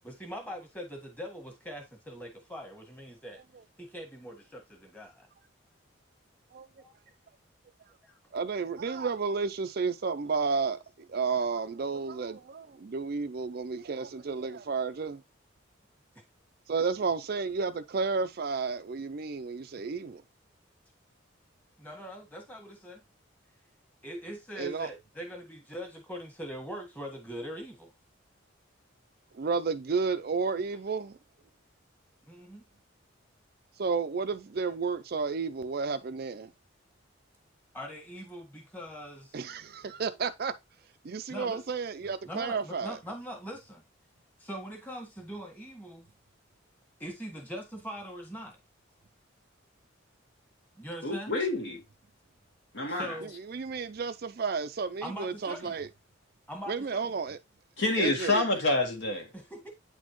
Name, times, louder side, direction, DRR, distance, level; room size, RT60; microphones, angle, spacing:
voice 1, 0.0-3.4 3.8-5.1 21.8-23.0 24.0-27.9 32.3-32.6 37.7-39.3 41.3-41.6 42.3-43.8 44.4-46.1 47.0-48.6 50.8-51.3 52.9-53.4 55.0-55.7 56.5-56.7 59.3-59.7, equal, 10° left, 1.5 m, -41 dB
voice 2, 8.3-10.8 11.1-15.2 16.7-20.2 24.5-24.9 29.3-31.2 33.8-36.5 39.3-40.5 41.0-43.0 53.2-55.9 56.7-57.4 58.0-58.5, right 5 dB, 50° right, 0.4 m, -32 dB
voice 3, 51.0-51.8 52.7-53.2 57.8-59.3, left 2 dB, 60° left, 1.6 m, -28 dB
8.9 x 4.2 x 3.0 m
head